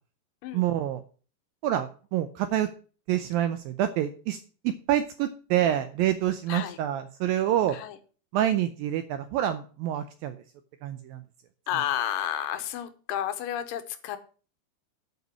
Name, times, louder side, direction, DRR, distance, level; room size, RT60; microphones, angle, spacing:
voice 1, 0.5-1.0 1.6-2.7 3.1-4.4 4.6-7.8 8.3-10.4 10.8-11.2, right 11 dB, 80° right, 9 dB, 2.1 m, -27 dB
voice 2, 11.7-14.2, left 11 dB, 70° left, 9 dB, 2.2 m, -31 dB
9.3 x 5.3 x 7.3 m, 0.38 s
omnidirectional pair, 4.8 m